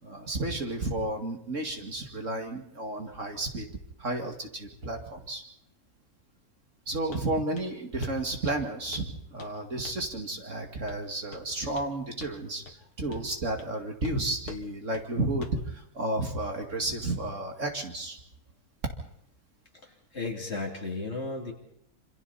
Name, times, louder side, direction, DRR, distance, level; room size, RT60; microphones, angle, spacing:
voice 1, 0.0-3.7 4.0-5.4 6.9-12.6 13.0-18.2, right 2 dB, 55° right, 3 dB, 2.7 m, -32 dB
Walk footsteps, 7.1-7.3 7.6-7.8 8.0-8.2 8.5-9.1 9.4-9.6 9.9-10.1 10.9-11.0 11.3-11.9 12.2-12.4 12.7-12.8 13.1-13.3 13.6-13.8 14.0-14.2 14.5-14.7 14.9-15.1 15.4-15.7, left 5 dB, 85° left, 2.2 m, -46 dB
voice 2, 19.8-21.5, left 3 dB, 45° left, 0 dB, 3.5 m, -34 dB
27.5 x 26.5 x 4.2 m, 0.75 s
omnidirectional pair, 1.6 m